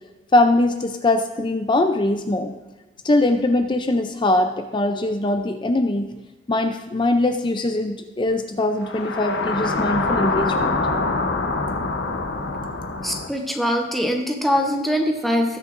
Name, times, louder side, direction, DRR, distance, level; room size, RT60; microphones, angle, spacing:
voice 1, 0.3-2.6 3.0-6.1 6.5-10.8, left 2 dB, 25° left, 6 dB, 0.5 m, -21 dB
sound 1, 8.8-13.3, left 3 dB, 60° left, 0.9 m, -24 dB
voice 2, 13.0-15.6, equal, ahead, 1 dB, 0.9 m, -22 dB
19.0 x 6.4 x 2.6 m, 1.1 s
head